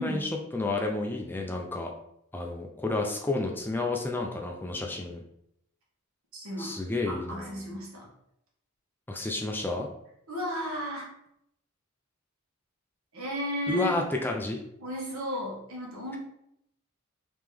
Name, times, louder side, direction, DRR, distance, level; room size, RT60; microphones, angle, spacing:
voice 1, 0.0-1.9 2.3-5.2 6.6-7.6 9.1-9.9 13.7-14.6, left 2 dB, 10° left, 1 dB, 0.3 m, -31 dB
voice 2, 6.3-6.8 7.0-8.1 10.3-11.1 13.1-13.9 14.8-16.2, equal, 75° right, -3 dB, 1.3 m, -34 dB
3.6 x 2.9 x 3.3 m, 0.76 s
head